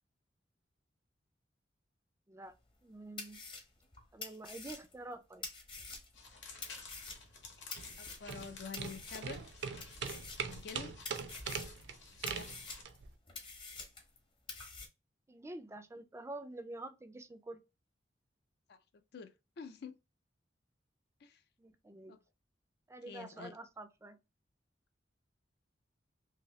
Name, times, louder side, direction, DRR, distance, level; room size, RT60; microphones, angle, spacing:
sound 1, 2.7-2.8 3.2-6.3 6.6-8.5 8.7-9.5 9.8-10.8 11.0-11.9 12.3-14.2 14.5-14.9, left 4 dB, 30° left, 0.8 m, -47 dB
voice 1, 2.8-3.4 4.1-5.5 15.3-17.6 21.6-22.2 22.9-24.2, right 2 dB, 15° right, 0.3 m, -47 dB
sound 2, 6.1-12.8, left 4 dB, 85° left, 0.9 m, -54 dB
sound 3, 7.8-13.1, right 6 dB, 70° right, 0.5 m, -42 dB
voice 2, 8.0-9.6 10.4-10.9 12.2-12.6 18.7-19.9 21.2-21.4 22.1-22.2 23.1-23.5, left 5 dB, 65° left, 0.4 m, -48 dB
2.8 x 2.7 x 3.0 m
head